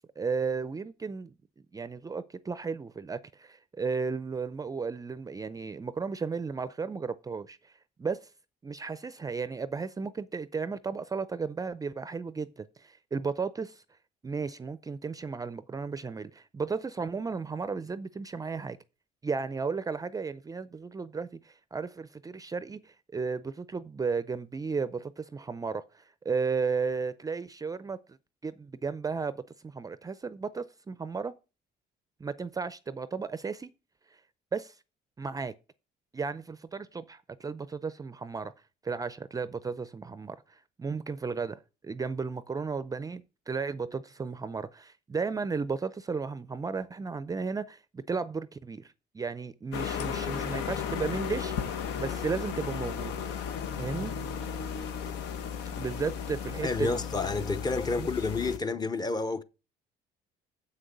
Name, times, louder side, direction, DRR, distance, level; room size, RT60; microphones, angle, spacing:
voice 1, 0.2-1.3 1.7-7.7 8.0-8.2 8.6-13.8 14.2-18.8 19.2-28.2 28.4-31.3 32.2-33.7 34.5-34.7 35.2-35.5 36.1-38.5 38.8-53.2 53.8-54.2 55.8-57.0 58.0-58.1, right 5 dB, 20° right, 0.5 m, -34 dB
sound 1, 49.7-58.6, left 7 dB, 85° left, 1.1 m, -35 dB
voice 2, 56.6-59.4, left 3 dB, 25° left, 0.8 m, -30 dB
7.6 x 6.2 x 6.6 m
cardioid pair, 110°, 17 cm